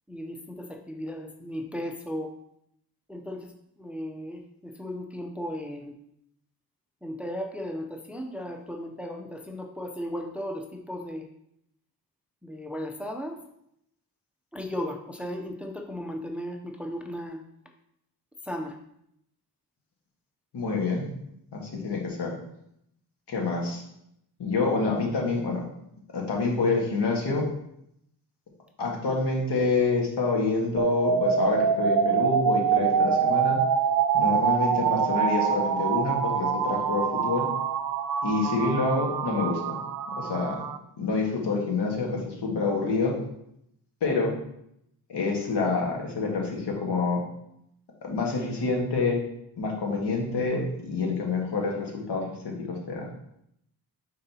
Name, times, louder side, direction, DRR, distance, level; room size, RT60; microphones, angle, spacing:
voice 1, 0.1-2.3 3.1-3.5 3.8-6.0 7.0-11.3 12.4-13.4 14.5-17.4 18.4-18.8, equal, 5° right, 3 dB, 0.5 m, -36 dB
voice 2, 20.5-21.1 21.5-22.4 23.3-23.8 24.4-25.6 26.1-27.5 28.8-33.6 34.1-37.4 38.2-39.8 40.2-40.6 41.0-43.1 44.0-44.3 45.1-47.2 48.0-49.2 49.6-52.5 52.9-53.1, left 3 dB, 90° left, -1 dB, 1.6 m, -27 dB
sound 1, 30.8-40.8, right 7 dB, 60° right, 0.5 m, -25 dB
9.0 x 4.0 x 2.8 m, 0.77 s
wide cardioid pair, 145°, 40 cm